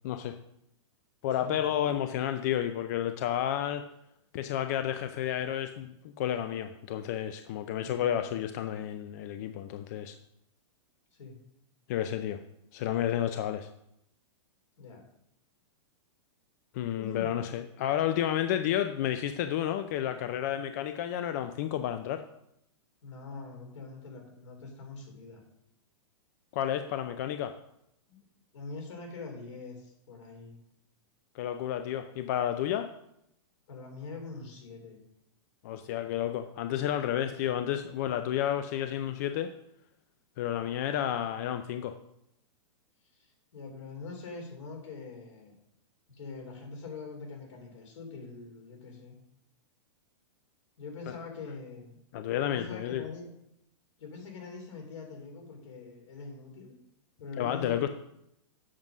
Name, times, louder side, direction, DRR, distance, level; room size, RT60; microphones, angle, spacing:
voice 1, 0.0-0.3 1.2-3.9 4.3-10.2 11.9-12.4 12.7-13.7 16.7-22.2 26.5-27.6 31.3-32.9 35.6-39.5 40.4-42.0 51.1-51.2 52.1-53.0 57.4-57.9, left 11 dB, 35° left, 9 dB, 0.4 m, -31 dB
voice 2, 7.8-8.4 11.2-11.4 14.8-15.0 17.0-17.3 23.0-25.4 28.1-28.2 28.5-30.6 33.7-35.0 41.0-41.2 43.2-45.5 46.1-49.2 50.8-52.0 52.4-53.3 54.0-56.7 57.2-57.9, left 4 dB, 75° left, 1 dB, 3.4 m, -43 dB
7.4 x 5.4 x 6.0 m, 0.79 s
hypercardioid pair, 165°, 16 cm